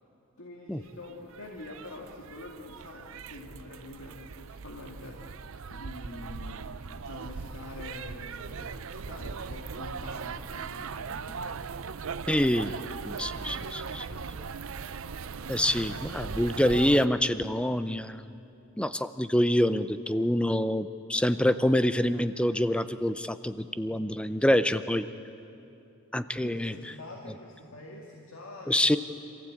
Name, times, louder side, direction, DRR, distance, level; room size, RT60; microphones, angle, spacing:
voice 1, 0.4-11.6 26.4-28.9, left 2 dB, 65° left, 0 dB, 2.1 m, -45 dB
sound 1, 0.9-17.1, right 5 dB, 65° right, 0.6 m, -39 dB
voice 2, 12.3-12.7 13.0-14.1 14.4-14.5 15.5-18.3 18.8-25.1 26.1-26.7 28.7-29.0, left 1 dB, 5° left, 12 dB, 0.5 m, -26 dB
26.5 x 15.0 x 8.6 m, 2.7 s
head